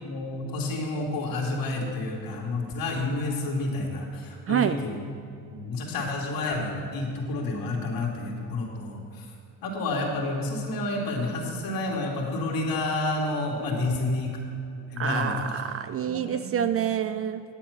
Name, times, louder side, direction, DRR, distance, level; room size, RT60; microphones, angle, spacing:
voice 1, 0.0-5.0 5.4-9.3 9.6-14.3 14.9-15.6 16.0-16.8, left 2 dB, 60° left, -1 dB, 2.4 m, -30 dB
voice 2, 15.0-17.4, right 9 dB, 35° right, 11 dB, 0.4 m, -27 dB
9.8 x 7.6 x 5.8 m, 2.5 s
supercardioid pair, 90°, 40 cm